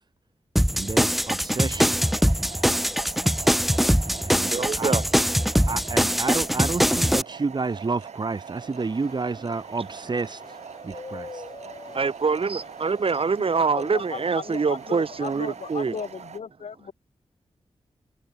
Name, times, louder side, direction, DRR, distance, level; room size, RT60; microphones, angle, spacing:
sound 1, 0.6-7.2, equal, ahead, 0.4 m, -22 dB
voice 1, 0.7-2.0 4.2-4.9 5.7-10.4 10.8-11.4, right 4 dB, 40° right, 1.2 m, -30 dB
sound 2, 1.1-16.4, right 7 dB, 85° right, 2.1 m, -43 dB
voice 2, 4.2-5.0 11.6-16.0, right 5 dB, 55° right, 2.0 m, -25 dB
sound 3, 8.6-16.1, left 3 dB, 45° left, 5.0 m, -47 dB
voice 3, 13.7-16.9, left 6 dB, 80° left, 2.7 m, -36 dB
cardioid pair, 70°, 11 cm